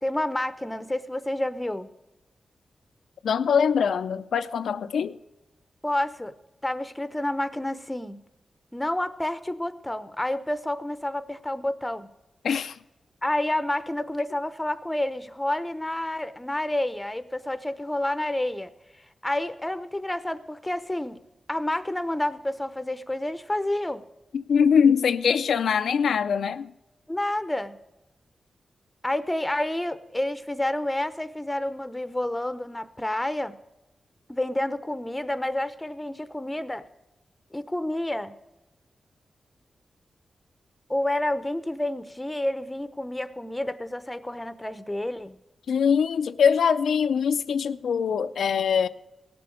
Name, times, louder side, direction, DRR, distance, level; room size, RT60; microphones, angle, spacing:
voice 1, 0.0-1.9 5.8-6.3 6.6-8.2 8.7-12.1 13.2-18.7 19.2-21.2 21.5-24.0 27.1-27.8 29.0-33.5 34.3-36.8 37.5-38.3 40.9-45.4, left 1 dB, 10° left, 0.8 m, -29 dB
voice 2, 3.2-5.2 12.4-12.8 24.3-26.7 45.7-48.9, left 7 dB, 90° left, 0.5 m, -23 dB
17.5 x 6.9 x 6.4 m
cardioid pair, 85°, 0 cm